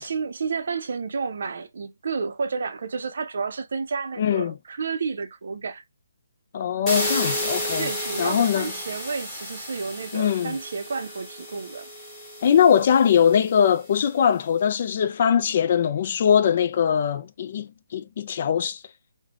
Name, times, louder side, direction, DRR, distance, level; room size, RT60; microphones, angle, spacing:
voice 1, 0.0-5.8 7.8-11.9, right 5 dB, 60° right, 0.4 m, -31 dB
voice 2, 4.2-4.5 6.5-7.9 8.2-8.7 10.1-10.5 12.4-18.8, left 8 dB, 45° left, 0.3 m, -21 dB
sound 1, 6.9-13.7, equal, 10° left, 1.3 m, -32 dB
3.2 x 2.0 x 2.4 m
figure-of-eight pair, 150°, 0 cm